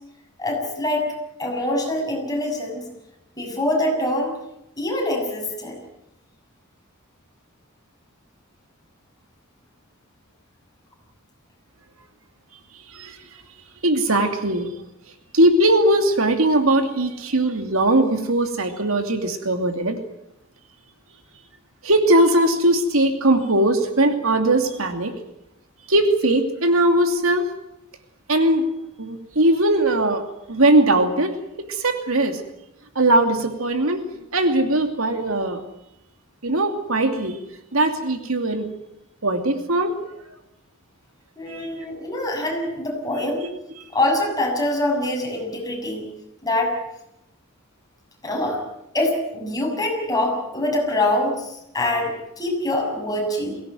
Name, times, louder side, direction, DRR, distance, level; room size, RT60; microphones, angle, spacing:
voice 1, 0.4-1.1 1.4-2.9 3.4-4.3 4.8-5.8 41.4-43.5 43.9-46.0 46.4-46.7 48.2-48.6 48.9-53.6, left 1 dB, 20° left, 0 dB, 6.9 m, -24 dB
voice 2, 13.8-14.7 15.3-20.0 21.8-25.1 25.9-27.5 28.3-28.7 29.0-30.2 30.5-32.4 32.9-34.0 34.3-35.6 36.4-37.4 37.7-38.7 39.2-40.0 41.5-41.7 43.4-43.5, right 1 dB, 70° right, 6 dB, 2.7 m, -20 dB
23.0 x 17.0 x 9.4 m, 0.84 s
head